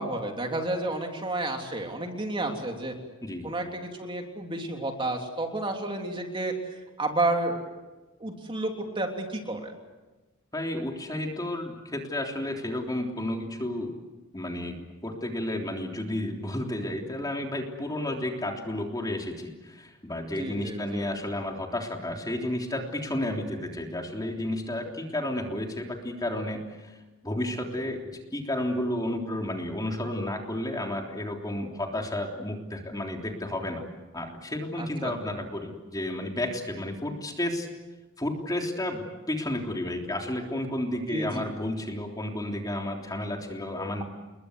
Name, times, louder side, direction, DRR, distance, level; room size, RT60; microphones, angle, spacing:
voice 1, 0.0-2.9 3.4-7.6 8.2-9.7 20.4-21.1 34.8-35.1 41.1-41.4, right 2 dB, 25° right, 2 dB, 3.3 m, -31 dB
voice 2, 3.2-3.5 10.5-13.9 14.3-27.0 27.2-33.8 34.1-37.7 38.2-44.0, left 1 dB, 20° left, 2 dB, 3.4 m, -32 dB
29.5 x 22.0 x 8.1 m, 1.1 s
head